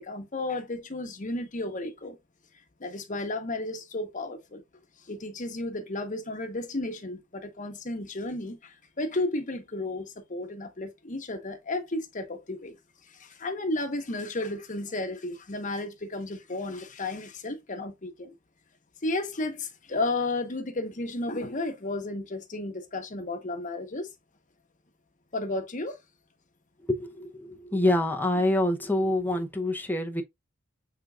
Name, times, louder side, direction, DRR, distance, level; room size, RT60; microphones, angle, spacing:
voice 1, 0.0-2.2 2.8-4.6 5.1-12.8 13.1-18.3 19.0-24.1 25.3-26.0, left 2 dB, 40° left, 1.0 m, -33 dB
voice 2, 26.9-30.2, left 1 dB, 10° left, 0.6 m, -26 dB
6.0 x 3.8 x 2.3 m
head